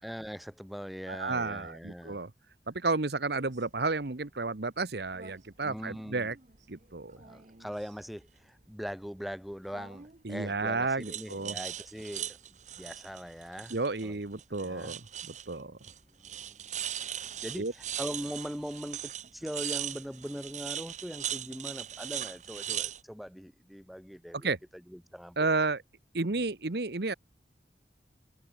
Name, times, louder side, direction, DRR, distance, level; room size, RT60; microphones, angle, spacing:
voice 1, 0.0-2.2 5.6-6.3 7.2-13.8 14.0-14.2 14.5-15.0 16.2-16.7 17.4-25.4, equal, ahead, 2.8 m, -41 dB
voice 2, 1.1-2.3 2.7-6.4 6.7-7.2 10.2-11.5 13.7-15.0 15.3-15.8 17.6-17.7 24.4-24.6 25.4-25.8 26.1-27.1, right 3 dB, 65° right, 1.1 m, -32 dB
sound 1, 3.4-3.6 5.1-5.3 5.7-6.6 7.1-8.0 9.7-10.2 11.0-14.1 14.4-15.5 15.8-23.0, right 10 dB, 40° right, 1.1 m, -39 dB
head